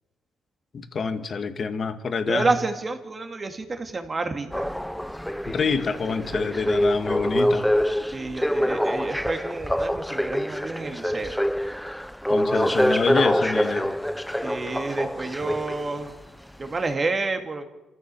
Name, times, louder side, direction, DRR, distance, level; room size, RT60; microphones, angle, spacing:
voice 1, 0.7-2.5 5.5-7.7 12.3-13.9, left 5 dB, 45° left, 8 dB, 1.8 m, -26 dB
voice 2, 2.3-4.7 8.1-11.3 12.6-12.9 14.4-16.1 16.6-17.6, right 3 dB, 30° right, 5 dB, 2.4 m, -29 dB
sound 1, 4.5-16.1 16.8-16.9, equal, 5° left, 0.6 m, -25 dB
26.5 x 14.5 x 7.1 m, 1.1 s
cardioid pair, 90°, 0 cm